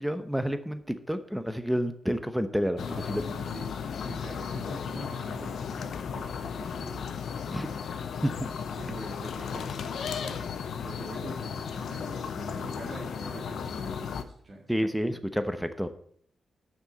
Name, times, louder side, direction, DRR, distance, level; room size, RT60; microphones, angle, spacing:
voice 1, 0.0-3.2 7.5-7.7 8.2-8.5 14.7-15.9, equal, ahead, 10 dB, 0.9 m, -29 dB
sound 1, 2.8-14.2, left 6 dB, 75° left, 0.7 m, -35 dB
voice 2, 2.9-7.2 7.8-8.0 8.8-10.4 10.8-14.8, right 2 dB, 45° right, -2 dB, 1.9 m, -45 dB
7.1 x 6.1 x 7.3 m, 0.65 s
cardioid pair, 65°, 0 cm